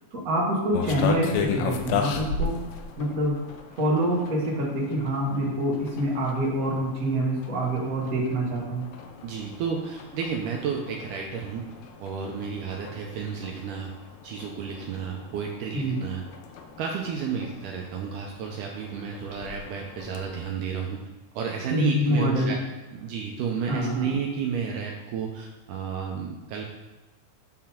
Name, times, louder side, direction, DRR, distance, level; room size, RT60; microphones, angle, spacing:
voice 1, 0.1-2.5 3.0-3.4 3.7-8.9 15.7-16.0 21.7-22.5 23.7-24.1, right 1 dB, 40° right, -4 dB, 1.2 m, -26 dB
sound 1, 0.7-20.5, left 6 dB, 80° left, 2.2 m, -36 dB
voice 2, 9.2-11.7 12.0-13.9 14.2-16.2 16.8-21.0 21.4-22.6 22.9-26.6, right 6 dB, 90° right, 0 dB, 1.8 m, -32 dB
9.5 x 3.9 x 4.3 m, 1.1 s
omnidirectional pair, 4.3 m